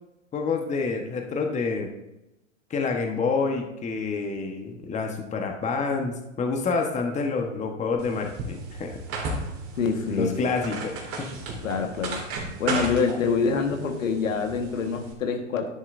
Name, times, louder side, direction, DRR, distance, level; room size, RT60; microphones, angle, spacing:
voice 1, 0.3-1.9 2.7-9.4 10.1-11.3, left 4 dB, 20° left, 3 dB, 1.2 m, -28 dB
sound 1, 8.0-15.1, right 3 dB, 35° right, 2.5 m, -35 dB
voice 2, 9.8-10.3 11.6-12.2 12.6-15.7, left 5 dB, 80° left, 4 dB, 1.6 m, -26 dB
10.5 x 10.0 x 2.6 m, 0.92 s
hypercardioid pair, 110°, 39 cm